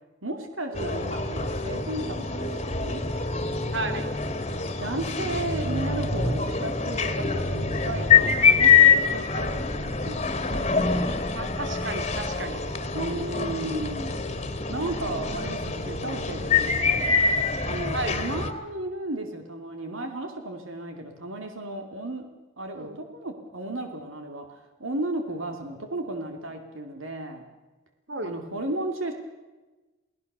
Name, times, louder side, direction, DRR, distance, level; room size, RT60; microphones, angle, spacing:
voice 1, 0.2-3.0 4.8-11.1 12.9-14.2 14.7-17.2 17.6-22.2 22.6-27.4 28.2-29.1, right 1 dB, 80° right, 5 dB, 2.7 m, -34 dB
sound 1, 0.7-18.5, left 5 dB, 30° left, 2.0 m, -25 dB
voice 2, 3.7-4.1 11.3-12.6 17.9-18.2 22.7-23.0 28.1-28.3, right 2 dB, 60° right, 7 dB, 3.1 m, -33 dB
29.5 x 18.5 x 6.8 m, 1.2 s
head